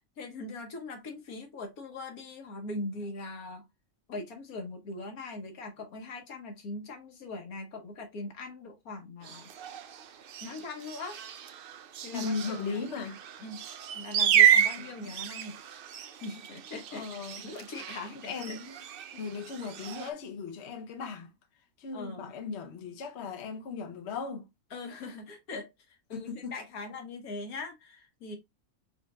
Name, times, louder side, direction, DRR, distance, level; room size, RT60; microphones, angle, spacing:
voice 1, 0.2-3.6 4.1-9.5 10.4-11.2 12.0-12.8 13.4-13.6 13.9-15.5 16.2-17.1 17.4-18.6 19.1-19.2 21.9-22.3 24.7-25.7 26.1-28.4, left 2 dB, 75° left, 1.6 m, -41 dB
sound 1, 9.2-20.1, right 9 dB, 80° right, 0.5 m, -31 dB
voice 2, 12.1-13.2 14.8-15.1 16.9-17.5 18.3-18.8 19.2-21.3 21.8-24.5 26.1-26.5, left 5 dB, 55° left, 1.0 m, -37 dB
5.1 x 4.0 x 2.2 m
omnidirectional pair, 1.5 m